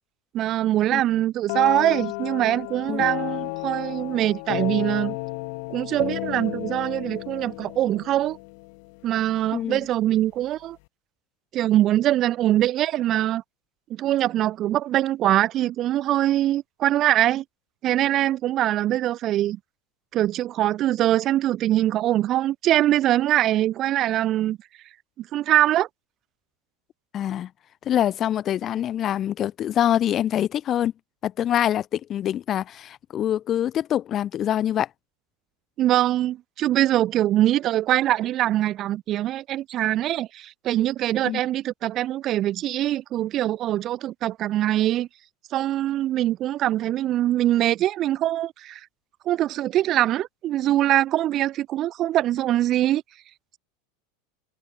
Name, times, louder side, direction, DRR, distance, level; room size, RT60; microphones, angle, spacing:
voice 1, 0.3-5.2 5.7-8.4 9.0-10.8 11.5-13.4 13.9-17.4 17.8-19.6 20.1-24.6 25.2-25.9 35.8-45.1 45.5-48.9 49.3-53.0, right 13 dB, 35° right, 0.4 m, -23 dB
sound 1, 1.5-9.2, left 34 dB, 50° left, 1.1 m, -32 dB
voice 2, 9.5-9.9 27.1-27.5 27.8-30.9 31.2-34.9 41.2-41.4, left 11 dB, 30° left, 1.3 m, -25 dB
figure-of-eight pair, 80°, 0 cm